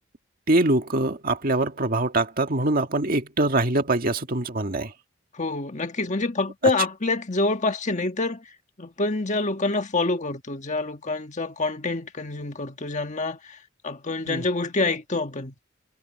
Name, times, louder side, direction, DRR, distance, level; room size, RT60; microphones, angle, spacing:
voice 1, 0.5-4.9 14.3-14.4, right 2 dB, 45° right, 1.8 m, -23 dB
voice 2, 5.3-13.6 13.8-15.5, left 3 dB, 35° left, 1.5 m, -27 dB
head